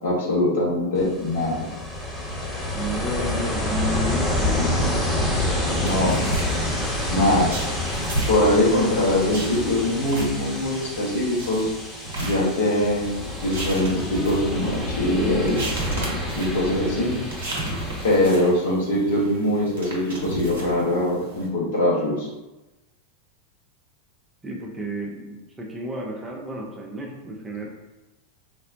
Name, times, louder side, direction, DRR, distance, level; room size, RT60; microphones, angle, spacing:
voice 1, 0.0-1.7 4.7-4.8 5.8-6.2 7.1-7.5 8.3-11.7 12.2-13.1 13.4-17.1 18.0-22.3, left 1 dB, 60° left, -5 dB, 0.9 m, -22 dB
Ocean, 1.0-18.3, left 1 dB, 5° left, 0.9 m, -28 dB
voice 2, 2.7-6.2 7.2-7.5 24.4-27.7, equal, 15° right, -1 dB, 0.5 m, -32 dB
sound 1, 5.8-21.5, right 1 dB, 60° right, 0.7 m, -34 dB
3.7 x 2.1 x 2.5 m, 1.0 s
figure-of-eight pair, 90°, 0 cm